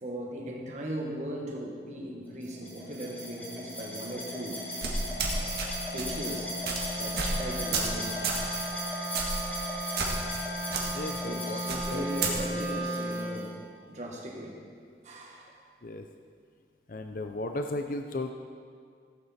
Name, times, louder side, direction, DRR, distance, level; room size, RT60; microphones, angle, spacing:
voice 1, 0.0-4.6 5.4-6.6 7.0-8.2 11.1-13.6 13.9-14.6 15.0-15.5, right 1 dB, 40° right, -1 dB, 1.6 m, -38 dB
Wind instrument woodwind instrument, 1.9-13.5, right 1 dB, 85° right, 2.4 m, -38 dB
sound 1, 2.4-13.5, equal, 10° left, 2.9 m, -38 dB
sound 2, 4.8-5.7 6.0-6.2 6.6-6.8 7.2-7.4 7.7-7.9 8.2-8.4 9.1-9.4 10.0-10.4 10.7-10.8 11.7-12.3, right 4 dB, 60° right, 1.7 m, -30 dB
voice 2, 11.0-12.0 15.8-16.0 16.9-18.3, left 2 dB, 50° left, 6 dB, 0.5 m, -35 dB
15.5 x 8.7 x 4.3 m, 2.1 s
head